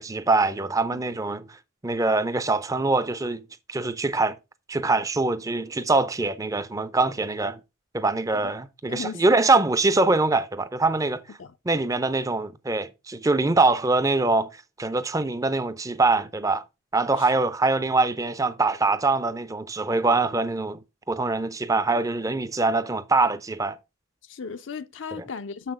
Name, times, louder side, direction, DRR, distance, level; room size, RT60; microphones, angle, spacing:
voice 1, 0.0-1.5 1.8-4.4 4.7-7.6 7.9-11.2 11.7-14.5 14.8-16.6 16.9-20.8 21.1-23.8 25.2-25.3, right 3 dB, 15° right, 0.5 m, -23 dB
voice 2, 8.9-9.2 11.4-11.5 17.2-17.3 24.3-25.7, left 5 dB, 65° left, 0.5 m, -35 dB
6.9 x 5.8 x 4.7 m
head